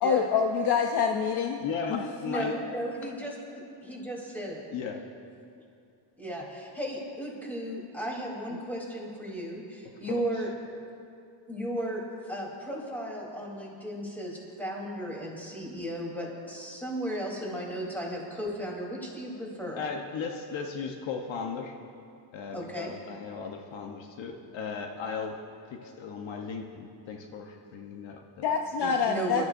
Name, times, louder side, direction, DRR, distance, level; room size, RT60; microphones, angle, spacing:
voice 1, 0.0-1.6 1.9-2.0 28.4-29.4, left 6 dB, 55° left, 3 dB, 0.7 m, -26 dB
voice 2, 1.6-2.6 4.7-5.0 10.1-10.2 19.7-21.7 22.3-25.4 25.7-28.5, left 5 dB, 75° left, 2 dB, 1.1 m, -36 dB
voice 3, 2.2-4.6 6.2-10.5 11.5-19.8 22.5-22.9 28.8-29.5, right 1 dB, 5° left, -3 dB, 3.5 m, -35 dB
23.5 x 12.5 x 2.6 m, 2.5 s
cardioid pair, 120°, 46 cm